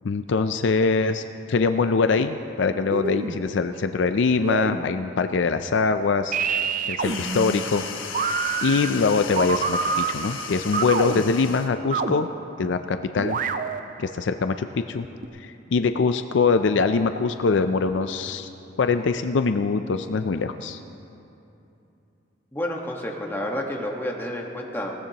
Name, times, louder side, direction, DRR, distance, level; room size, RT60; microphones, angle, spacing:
voice 1, 0.0-7.8 8.6-12.3 12.6-13.4 14.0-15.0 15.3-18.5 18.8-20.8, left 4 dB, 65° left, 9 dB, 0.4 m, -23 dB
sound 1, 1.8-2.5 2.9-3.8 4.4-5.2 6.3-12.7 13.2-14.2 15.2-15.3, right 5 dB, 40° right, 0.5 m, -28 dB
sound 2, 7.0-11.8, left 6 dB, 90° left, 1.2 m, -35 dB
voice 2, 22.5-24.9, left 1 dB, 10° left, -1 dB, 1.4 m, -30 dB
21.0 x 17.0 x 3.0 m, 2.8 s
head